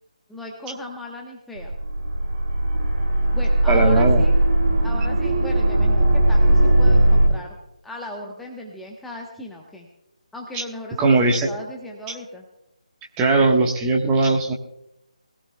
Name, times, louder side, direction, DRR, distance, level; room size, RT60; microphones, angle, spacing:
voice 1, 0.3-1.7 3.3-4.3 4.8-7.6 7.8-9.9 10.3-12.4, left 1 dB, 5° left, -1 dB, 1.1 m, -36 dB
sound 1, 1.6-7.3, right 1 dB, 55° right, 4.8 m, -18 dB
voice 2, 3.7-4.2 10.5-10.6 11.0-11.5 13.2-14.5, right 3 dB, 15° right, 0 dB, 1.3 m, -19 dB
21.5 x 16.5 x 2.3 m, 0.85 s
figure-of-eight pair, 150°, 4 cm